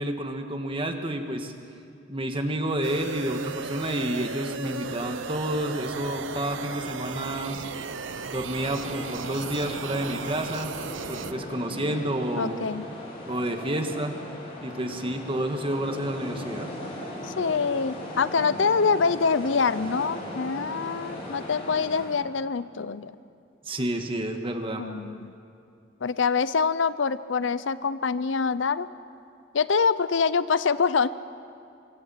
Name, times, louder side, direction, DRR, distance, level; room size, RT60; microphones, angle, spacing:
voice 1, 0.0-1.5 2.1-7.6 8.2-10.7 11.1-12.7 13.3-14.2 14.6-16.7 23.7-24.9, right 1 dB, 30° right, 5 dB, 1.7 m, -29 dB
sound 1, 2.8-11.3, right 5 dB, 90° right, 0.9 m, -36 dB
sound 2, 8.5-22.1, left 1 dB, 30° left, 5.4 m, -38 dB
voice 2, 12.4-12.8 17.2-23.1 24.8-25.3 26.0-28.9 29.5-31.1, left 5 dB, 75° left, 16 dB, 0.6 m, -25 dB
24.5 x 24.5 x 5.8 m, 2.5 s
head